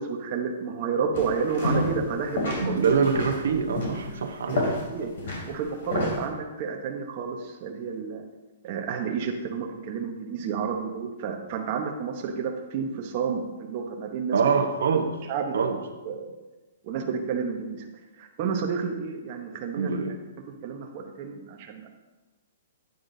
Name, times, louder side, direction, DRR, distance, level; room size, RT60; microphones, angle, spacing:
voice 1, 0.0-2.9 4.5-8.2 8.6-14.4 15.3-15.8 16.0-16.4 16.8-17.9 18.2-20.0 20.6-21.9, right 6 dB, 30° right, 1 dB, 0.9 m, -31 dB
sound 1, 1.1-2.1 2.3-6.2, left 1 dB, 55° left, 2.9 m, -29 dB
voice 2, 2.6-4.7 14.3-15.2 15.5-15.8 19.7-20.1, right 5 dB, 65° right, 6 dB, 0.9 m, -24 dB
10.5 x 9.5 x 2.7 m, 1.1 s
hypercardioid pair, 175°, 0 cm